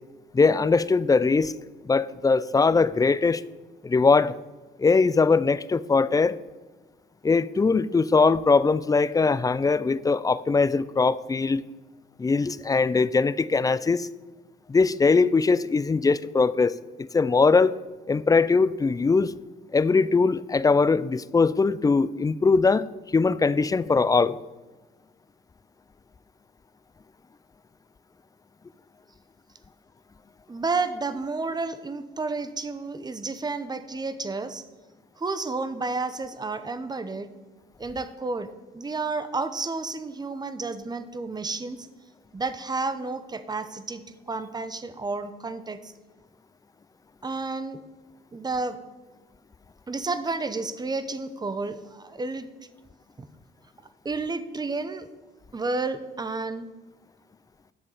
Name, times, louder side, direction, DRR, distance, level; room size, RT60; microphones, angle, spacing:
voice 1, 0.3-1.5 1.8-3.4 3.8-4.4 4.8-6.4 7.2-11.6 12.2-14.1 14.7-17.8 18.1-19.3 19.7-22.9 23.1-24.4, left 4 dB, 20° left, 17 dB, 0.3 m, -21 dB
voice 2, 30.5-34.6 35.2-37.3 37.8-38.5 38.7-41.9 42.3-45.9 47.2-47.8 48.3-48.8 49.9-52.5 53.2-53.3 54.0-55.1 55.5-56.7, right 3 dB, 20° right, 12 dB, 0.8 m, -31 dB
10.0 x 6.9 x 5.0 m, 1.3 s
cardioid pair, 90°, 20 cm